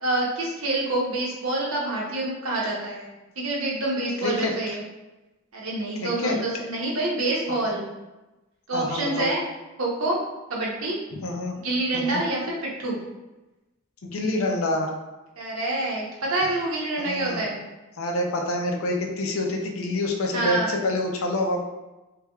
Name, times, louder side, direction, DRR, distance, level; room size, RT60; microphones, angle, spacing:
voice 1, 0.0-3.1 3.4-4.8 5.5-7.9 8.7-9.4 9.8-10.2 10.5-11.0 11.5-13.0 15.4-17.6 20.3-20.8, right 2 dB, 85° right, -3 dB, 0.9 m, -27 dB
voice 2, 4.2-4.5 6.0-6.4 8.7-9.3 11.2-11.5 11.9-12.2 14.0-14.9 17.0-17.4 18.0-21.6, left 1 dB, 85° left, 1 dB, 0.6 m, -27 dB
3.3 x 3.2 x 2.3 m, 1.1 s
head